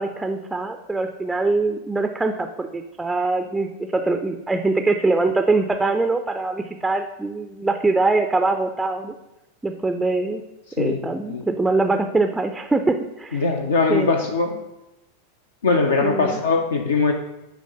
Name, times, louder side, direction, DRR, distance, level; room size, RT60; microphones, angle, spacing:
voice 1, 0.0-9.1 9.6-10.4 10.8-13.5 13.9-14.1 16.0-16.4, right 3 dB, 10° right, 6 dB, 0.4 m, -23 dB
voice 2, 13.3-14.6 15.6-17.1, left 4 dB, 70° left, 3 dB, 0.6 m, -21 dB
8.1 x 3.1 x 5.4 m, 0.94 s
figure-of-eight pair, 90°, 0 cm